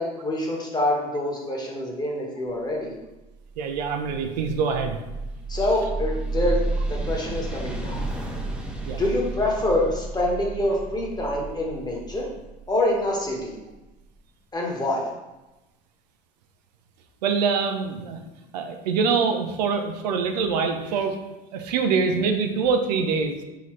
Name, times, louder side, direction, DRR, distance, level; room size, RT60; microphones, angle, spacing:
voice 1, 0.0-2.9 5.5-8.1 9.0-12.3 12.7-13.6 14.5-15.1, left 1 dB, 20° left, -2 dB, 1.3 m, -26 dB
sound 1, 3.2-14.0, right 2 dB, 5° right, 1.0 m, -32 dB
voice 2, 3.6-5.0 8.9-9.0 17.2-18.2 18.5-21.2 21.5-23.4, right 5 dB, 85° right, 5 dB, 0.6 m, -24 dB
4.0 x 3.8 x 3.2 m, 1.0 s
hypercardioid pair, 75°, 21 cm